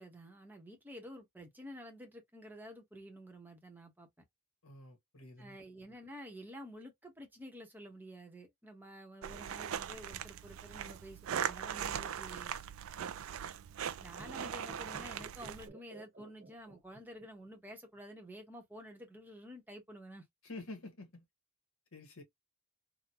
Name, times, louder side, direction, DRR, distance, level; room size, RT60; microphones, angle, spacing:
voice 1, 0.0-4.1 5.4-12.5 14.0-20.2, equal, 10° right, 0.9 m, -50 dB
voice 2, 4.6-5.6 20.4-21.2 21.9-22.2, left 2 dB, 65° left, 1.5 m, -48 dB
sound 1, 9.2-15.7, right 8 dB, 65° right, 0.4 m, -40 dB
sound 2, 14.1-17.5 17.7-17.8, right 2 dB, 40° right, 1.0 m, -54 dB
3.7 x 2.2 x 2.8 m
head